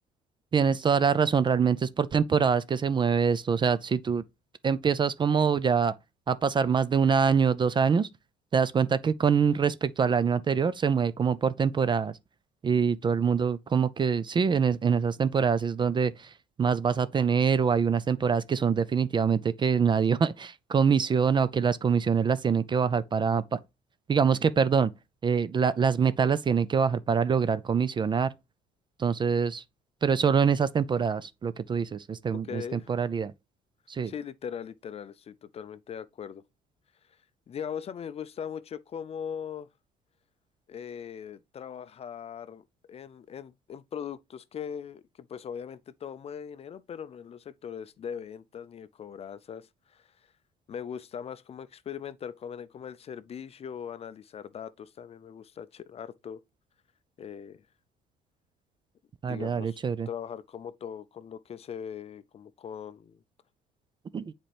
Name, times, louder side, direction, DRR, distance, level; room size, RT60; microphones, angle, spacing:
voice 1, 0.5-4.2 4.6-5.9 6.3-8.1 8.5-12.1 12.6-16.3 16.6-23.6 24.1-24.9 25.2-28.3 29.0-29.6 30.0-33.3 33.9-34.1 59.2-60.1 64.1-64.3, right 6 dB, 30° right, 0.4 m, -25 dB
voice 2, 32.3-33.0 34.0-36.4 37.5-39.7 40.7-50.0 50.7-56.4 57.2-57.6 59.3-63.2, left 8 dB, 35° left, 0.4 m, -40 dB
7.6 x 4.4 x 3.3 m
cardioid pair, 110°, 17 cm